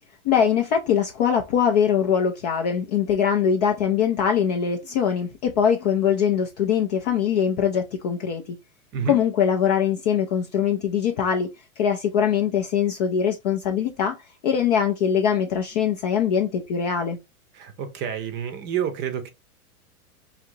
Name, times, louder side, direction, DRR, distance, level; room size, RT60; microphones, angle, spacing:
voice 1, 0.2-8.6 9.1-14.2 14.4-17.2, left 8 dB, 30° left, 0.4 m, -22 dB
voice 2, 17.5-19.3, right 8 dB, 25° right, 0.6 m, -29 dB
4.9 x 2.8 x 2.6 m
hypercardioid pair, 135°, 45 cm